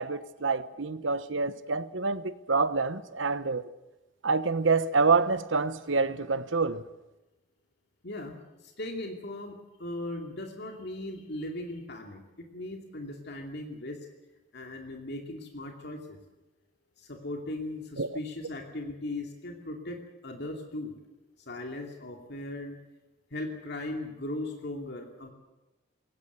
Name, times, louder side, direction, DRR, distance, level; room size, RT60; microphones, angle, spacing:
voice 1, 0.0-3.7 4.2-6.8 18.0-18.1, right 4 dB, 65° right, 1.1 m, -27 dB
voice 2, 8.0-14.0 14.5-16.2 17.0-20.9 21.4-22.8 23.3-25.3, left 1 dB, 55° left, 2.7 m, -38 dB
21.0 x 18.5 x 8.1 m
head